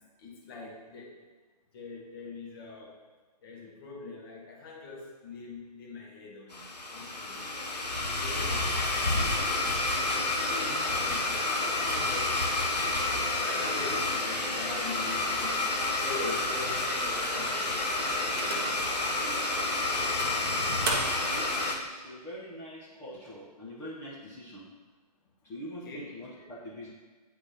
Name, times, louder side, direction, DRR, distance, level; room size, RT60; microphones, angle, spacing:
voice 1, 0.2-1.2 1.7-3.0 3.4-6.6 6.9-7.9 8.2-13.1 13.4-15.6 16.0-17.8 25.8-26.0, left 3 dB, 35° left, -3 dB, 1.3 m, -43 dB
Domestic sounds home sounds, 6.5-21.8, left 2 dB, 80° left, 1.0 m, -29 dB
sound 1, 17.2-18.9 19.5-19.6 20.2-21.4, right 2 dB, 35° right, 0.8 m, -36 dB
voice 2, 20.9-24.7 25.4-26.9, equal, 10° left, -7 dB, 0.6 m, -44 dB
8.6 x 4.3 x 2.9 m, 1.4 s
figure-of-eight pair, 130°, 21 cm